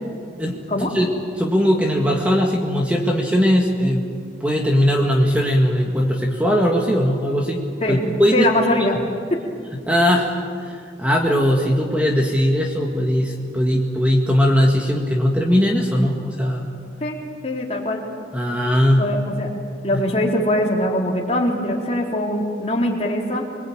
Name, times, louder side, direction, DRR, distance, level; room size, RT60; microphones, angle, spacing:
voice 1, 0.4-1.1 1.4-4.1 4.4-7.6 7.9-8.5 9.9-10.3 10.6-16.7 18.3-19.1 19.9-20.0, equal, 5° right, 0 dB, 2.0 m, -19 dB
voice 2, 8.3-9.0 9.3-9.4 17.0-17.2 17.4-18.0 19.0-19.5 19.8-23.4, left 1 dB, 35° left, -1 dB, 4.0 m, -22 dB
29.0 x 21.5 x 9.1 m, 2.2 s
head